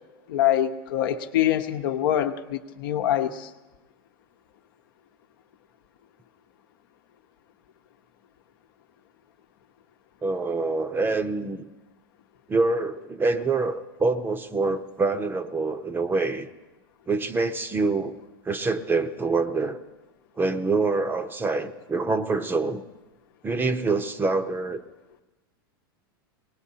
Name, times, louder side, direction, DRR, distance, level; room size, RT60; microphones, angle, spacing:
voice 1, 0.3-3.5, left 11 dB, 70° left, 6 dB, 0.9 m, -24 dB
voice 2, 10.2-11.6 12.5-16.5 17.1-18.1 18.4-19.8 20.4-22.8 23.4-24.8, right 3 dB, 15° right, 10 dB, 0.7 m, -25 dB
24.0 x 19.5 x 2.8 m, 1.1 s
hypercardioid pair, 110°, 12 cm